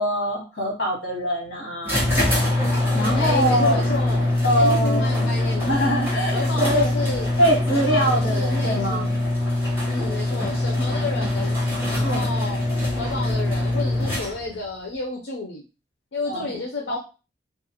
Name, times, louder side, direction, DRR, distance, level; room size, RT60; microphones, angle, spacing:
voice 1, 0.0-2.1 2.9-3.8 4.4-5.3 5.6-6.9 7.4-9.2 12.0-12.3 16.3-16.6 16.9-17.0, equal, 65° left, 0 dB, 1.1 m, -23 dB
sound 1, 1.8-14.6, left 1 dB, 10° right, 0.9 m, -23 dB
voice 2, 3.1-4.3 4.6-5.8 6.3-7.3 7.7-9.1 9.9-11.6 11.9-12.6 13.0-15.6 16.1-17.0, left 3 dB, 80° left, -1 dB, 0.5 m, -31 dB
2.4 x 2.4 x 2.7 m, 0.32 s
head